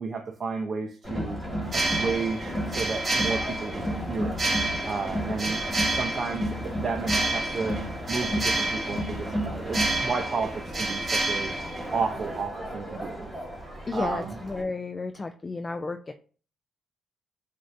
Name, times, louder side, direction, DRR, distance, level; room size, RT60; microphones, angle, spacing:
voice 1, 0.0-1.4 1.7-4.4 4.9-5.6 5.9-11.5 11.9-13.3 13.9-14.4, right 4 dB, 40° right, 0.6 m, -32 dB
Crowd, 1.0-14.6, equal, 10° left, 1.8 m, -33 dB
sound 1, 1.6-12.4, right 2 dB, 25° right, 2.2 m, -30 dB
voice 2, 13.9-16.1, left 3 dB, 25° left, 0.3 m, -32 dB
7.5 x 2.5 x 2.6 m
cardioid pair, 90°, 0 cm